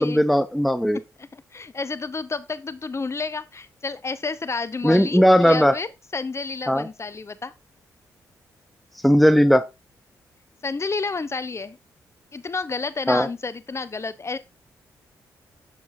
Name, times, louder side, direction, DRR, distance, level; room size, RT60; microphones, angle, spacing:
voice 1, 0.0-1.0 4.8-5.8 6.7-6.9 9.0-9.7 13.1-13.3, equal, ahead, 0.6 m, -17 dB
voice 2, 1.2-5.9 6.1-7.5 10.6-11.8 12.3-14.4, left 4 dB, 35° left, 0.8 m, -30 dB
8.4 x 7.0 x 2.6 m
supercardioid pair, 45°, 8 cm